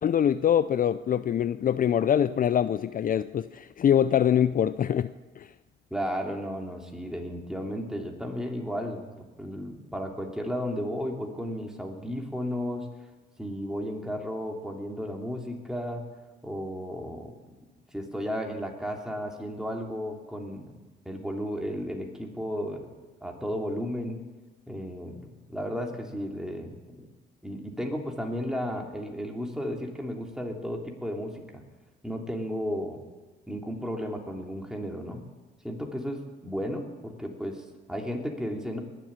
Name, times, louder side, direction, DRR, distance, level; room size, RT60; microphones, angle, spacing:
voice 1, 0.0-5.5, left 9 dB, 45° left, 14 dB, 0.5 m, -24 dB
voice 2, 5.9-12.9 13.4-16.0 16.4-17.5 17.9-20.7 21.0-22.9 23.2-24.2 24.7-27.1 27.4-31.6 32.0-33.0 33.5-35.2 35.6-38.8, equal, 5° right, 1 dB, 3.1 m, -34 dB
20.5 x 7.7 x 8.9 m, 1.2 s
cardioid pair, 90°, 20 cm